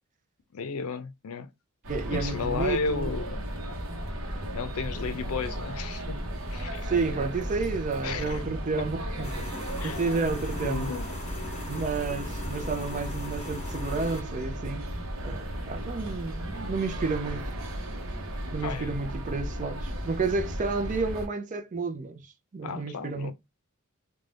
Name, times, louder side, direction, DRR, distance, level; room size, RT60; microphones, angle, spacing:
voice 1, 0.5-1.5 2.1-3.4 4.5-6.9 8.0-8.4 8.8-8.9 9.8-10.0 10.5-11.1 18.6-19.0 22.6-23.3, left 5 dB, 85° left, 0.5 m, -33 dB
sound 1, 1.8-21.3, equal, 70° right, 0.8 m, -35 dB
voice 2, 1.9-3.1 6.8-9.5 9.8-10.9 11.7-14.9 15.2-17.5 18.5-23.3, right 4 dB, 35° right, 0.4 m, -31 dB
sound 2, 9.2-14.2, left 2 dB, 30° left, 0.8 m, -41 dB
2.6 x 2.2 x 3.2 m
head